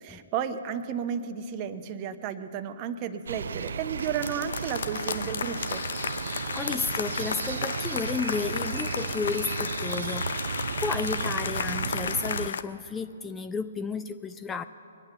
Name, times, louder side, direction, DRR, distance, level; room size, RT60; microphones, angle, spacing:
voice 1, 0.0-5.8, right 8 dB, 30° right, 11 dB, 0.8 m, -33 dB
sound 1, 3.3-3.7 4.0-12.6, left 6 dB, 60° left, 0.6 m, -33 dB
sound 2, 3.3-12.5, right 6 dB, 60° right, 0.3 m, -34 dB
voice 2, 6.2-14.6, left 5 dB, 10° left, 10 dB, 0.4 m, -33 dB
22.5 x 8.9 x 7.0 m, 2.7 s
figure-of-eight pair, 125°, 0 cm